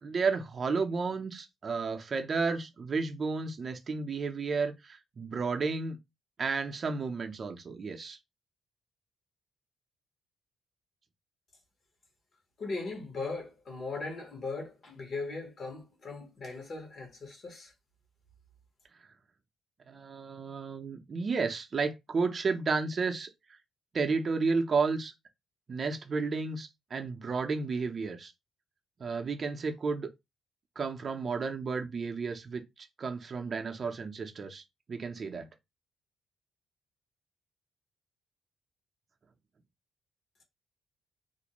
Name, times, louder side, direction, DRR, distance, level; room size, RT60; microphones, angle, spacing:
voice 1, 0.0-6.0 6.4-8.2 19.9-23.3 23.9-25.1 25.7-28.3 29.0-30.1 30.8-34.6 34.9-35.5, right 4 dB, 45° right, 0.5 m, -32 dB
voice 2, 12.6-17.7, left 3 dB, 50° left, 1.0 m, -38 dB
2.4 x 2.1 x 2.9 m
cardioid pair, 90°, 0 cm